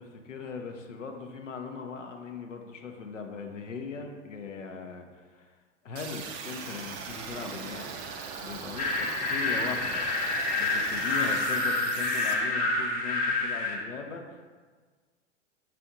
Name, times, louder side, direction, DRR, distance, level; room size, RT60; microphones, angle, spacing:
voice 1, 0.0-5.6 5.8-8.0 8.4-10.0 10.6-14.5, left 5 dB, 90° left, 3 dB, 0.7 m, -39 dB
sound 1, 6.0-12.3, right 5 dB, 25° right, 0.3 m, -39 dB
sound 2, 8.8-13.7, left 3 dB, 25° left, 0.8 m, -28 dB
5.9 x 2.5 x 3.5 m, 1.5 s
figure-of-eight pair, 100°, 37 cm